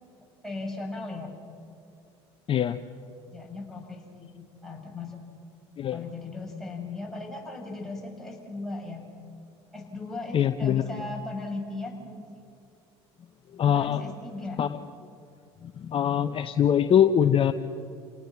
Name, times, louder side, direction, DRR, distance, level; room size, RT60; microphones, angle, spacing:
voice 1, 0.4-1.4 3.3-5.2 5.9-9.1 9.7-12.4 13.6-14.6, left 2 dB, 5° left, -2 dB, 6.4 m, -37 dB
voice 2, 10.3-10.8 13.5-14.0 14.6-14.7 15.6-17.5, left 9 dB, 40° left, 9 dB, 0.8 m, -23 dB
29.5 x 18.5 x 6.0 m, 2.5 s
hypercardioid pair, 80°, 14 cm